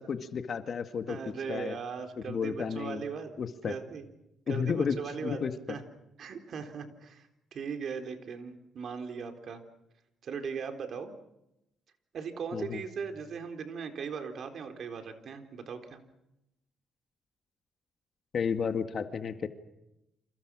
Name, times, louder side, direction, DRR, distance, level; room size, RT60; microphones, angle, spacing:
voice 1, 0.0-1.2 1.5-1.8 2.2-3.0 3.4-3.7 4.5-5.0 5.2-5.8 12.5-12.8 18.3-19.5, left 6 dB, 50° left, 8 dB, 2.0 m, -32 dB
voice 2, 1.1-3.3 3.7-4.1 4.5-5.4 5.7-5.8 6.2-9.6 10.2-11.1 12.1-16.0, right 6 dB, 60° right, 6 dB, 3.9 m, -38 dB
30.0 x 27.5 x 6.3 m, 0.89 s
cardioid pair, 90°, 0 cm